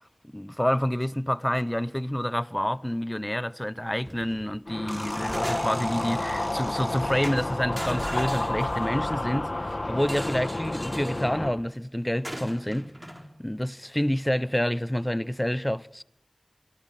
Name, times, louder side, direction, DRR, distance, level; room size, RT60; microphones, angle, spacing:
voice 1, 0.3-12.9 13.4-16.0, equal, 15° left, 0.8 m, -28 dB
sound 1, 4.0-4.5 4.9-6.0 6.7-6.9 7.2-9.1 10.0-11.3 12.2-13.2, equal, 20° right, 4.4 m, -38 dB
sound 2, 4.7-11.5, left 2 dB, 65° left, 2.0 m, -30 dB
sound 3, 4.9-7.8, right 1 dB, 55° right, 4.4 m, -43 dB
25.0 x 23.0 x 6.0 m
wide cardioid pair, 45°, 0 cm